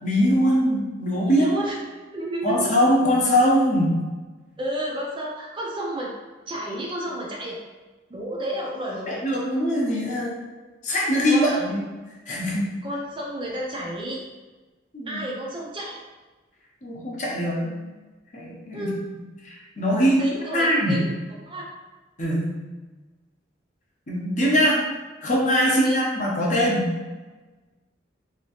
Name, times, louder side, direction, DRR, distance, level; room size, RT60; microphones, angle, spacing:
voice 1, 0.0-1.5 2.4-4.0 9.1-10.4 10.8-11.8 12.3-12.7 14.9-15.2 16.8-17.9 18.3-18.9 19.4-20.2 20.5-21.0 22.2-22.5 24.1-24.8 25.2-26.9, equal, 40° left, -4 dB, 0.7 m, -22 dB
voice 2, 1.3-2.7 4.6-6.1 6.5-7.6 8.1-9.2 11.3-11.6 12.8-14.2 15.1-16.0 18.7-19.0 20.0-21.1 21.4-21.6 25.6-26.0, right 1 dB, 25° right, -3 dB, 0.4 m, -31 dB
3.1 x 2.8 x 2.9 m, 1.2 s
head